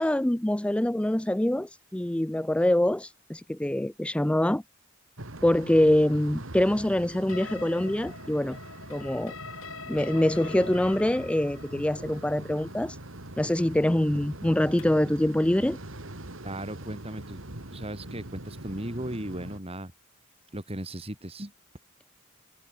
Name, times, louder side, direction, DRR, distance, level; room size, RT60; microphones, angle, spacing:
voice 1, 0.0-4.6 5.4-8.6 8.9-9.3 9.9-13.0 13.4-15.8, left 1 dB, 5° left, 0.4 m, -25 dB
sound 1, 5.2-19.6, right 1 dB, 75° right, 3.0 m, -42 dB
sound 2, 7.3-15.1, left 5 dB, 75° left, 5.6 m, -45 dB
voice 2, 16.4-17.4 17.7-19.9 20.5-21.5, right 1 dB, 30° right, 4.0 m, -36 dB
head